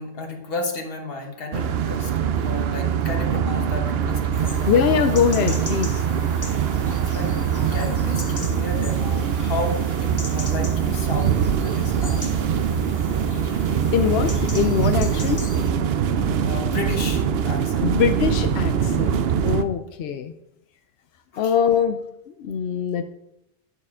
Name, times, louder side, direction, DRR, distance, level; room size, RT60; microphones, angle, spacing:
voice 1, 0.0-5.0 6.0-7.4 7.7-12.5 13.2-13.3 15.8-17.9 21.3-21.5, left 2 dB, 65° left, 3 dB, 1.4 m, -33 dB
sound 1, 1.5-19.6, right 8 dB, 75° right, 0.8 m, -23 dB
sound 2, 4.3-15.7, left 2 dB, 20° left, 0.7 m, -39 dB
voice 2, 4.7-6.0 13.9-15.4 17.8-20.3 21.4-22.0 22.3-23.0, left 7 dB, 85° left, 8 dB, 0.8 m, -22 dB
Bowed string instrument, 13.9-17.5, right 2 dB, 15° right, 0.9 m, -39 dB
10.0 x 6.5 x 3.7 m, 0.83 s
omnidirectional pair, 1.0 m